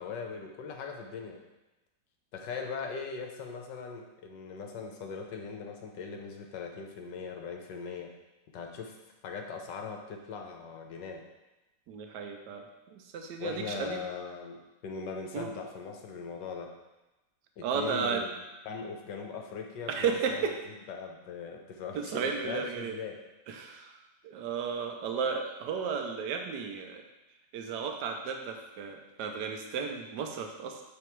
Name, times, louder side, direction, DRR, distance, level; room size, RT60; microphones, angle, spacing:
voice 1, 0.0-1.4 2.3-8.1 8.5-9.0 9.2-11.3 13.4-16.7 17.6-18.4 18.6-23.2, left 5 dB, 75° left, 3 dB, 1.4 m, -40 dB
voice 2, 11.9-14.0 15.3-15.5 17.6-18.2 19.9-20.5 21.9-23.0 23.5-24.0 24.2-27.0 27.5-30.8, right 6 dB, 70° right, 4 dB, 1.2 m, -34 dB
8.4 x 3.1 x 4.6 m, 1.0 s
omnidirectional pair, 2.0 m